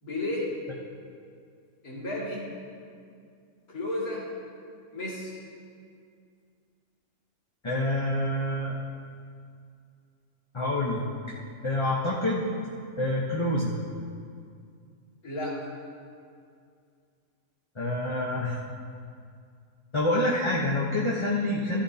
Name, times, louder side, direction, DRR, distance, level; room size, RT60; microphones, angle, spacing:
voice 1, 0.0-0.5 1.8-2.5 3.7-4.3 4.9-5.4 15.2-15.7, left 1 dB, 85° left, -6 dB, 2.9 m, -32 dB
voice 2, 7.6-8.8 10.5-11.0 11.6-12.5 13.0-13.8 17.8-18.6 19.9-21.8, left 1 dB, 25° left, -4 dB, 0.9 m, -27 dB
14.0 x 13.0 x 2.8 m, 2.3 s
omnidirectional pair, 1.5 m